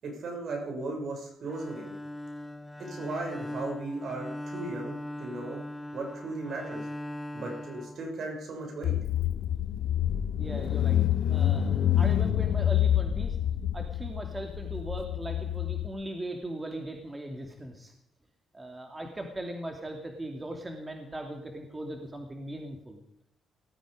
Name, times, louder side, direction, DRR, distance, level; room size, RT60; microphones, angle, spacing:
voice 1, 0.0-1.9 2.9-5.6 5.9-6.8 7.3-8.9 10.9-11.0, right 2 dB, 60° right, 1 dB, 6.8 m, -36 dB
Bowed string instrument, 1.4-8.6, left 1 dB, 10° left, 1.2 m, -40 dB
Car / Engine, 8.8-15.9, left 11 dB, 70° left, 0.9 m, -27 dB
voice 2, 10.1-11.0 11.3-13.4 13.7-17.9 18.5-23.0, right 1 dB, 20° right, 3 dB, 2.7 m, -39 dB
19.0 x 14.0 x 5.1 m, 0.77 s
cardioid pair, 90°, 0 cm